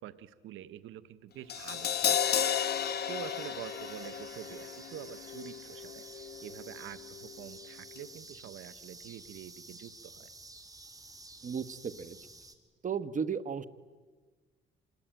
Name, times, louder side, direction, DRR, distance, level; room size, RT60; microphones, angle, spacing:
voice 1, 0.0-2.8 3.0-6.0 6.4-10.3, right 11 dB, 85° right, 15 dB, 0.9 m, -47 dB
Crash cymbal, 1.5-7.7 7.9-8.1, left 9 dB, 55° left, 1.7 m, -34 dB
sound 1, 1.5-12.5, right 2 dB, 15° right, 2.9 m, -51 dB
voice 2, 11.4-12.2 12.8-13.6, right 6 dB, 40° right, 14 dB, 1.2 m, -34 dB
26.5 x 20.5 x 9.1 m, 1.4 s
cardioid pair, 90°, 20 cm